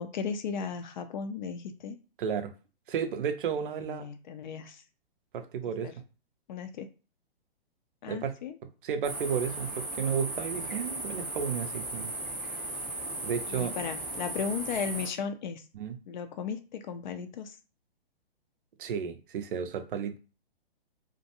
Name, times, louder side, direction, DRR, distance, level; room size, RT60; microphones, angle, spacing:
voice 1, 0.0-2.0 3.7-4.8 5.8-5.9 6.5-6.9 8.0-8.5 13.5-15.6 16.1-17.6, left 6 dB, 50° left, 0.4 m, -35 dB
voice 2, 2.2-2.5 2.9-4.1 5.3-5.9 8.1-8.4 8.8-12.1 13.2-13.7 15.7-16.0 18.8-20.2, right 7 dB, 60° right, 0.5 m, -32 dB
sound 1, 9.0-15.1, right 2 dB, 5° right, 0.6 m, -36 dB
2.5 x 2.2 x 2.7 m
hypercardioid pair, 130°, 31 cm